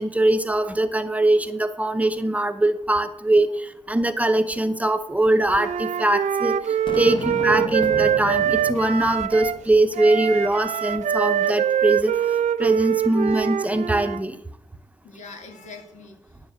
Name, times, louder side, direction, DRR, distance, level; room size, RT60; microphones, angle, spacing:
voice 1, 0.0-12.1 12.6-14.4, right 1 dB, 10° right, 8 dB, 0.8 m, -22 dB
Wind instrument woodwind instrument, 5.5-9.6 9.9-14.2, right 9 dB, 80° right, 0.5 m, -24 dB
Boom, 6.9-10.2, left 3 dB, 45° left, 1.0 m, -35 dB
voice 2, 13.0-13.8 15.0-16.4, left 4 dB, 85° left, 4 dB, 2.2 m, -45 dB
10.0 x 7.6 x 6.4 m, 0.73 s
wide cardioid pair, 125°, 12 cm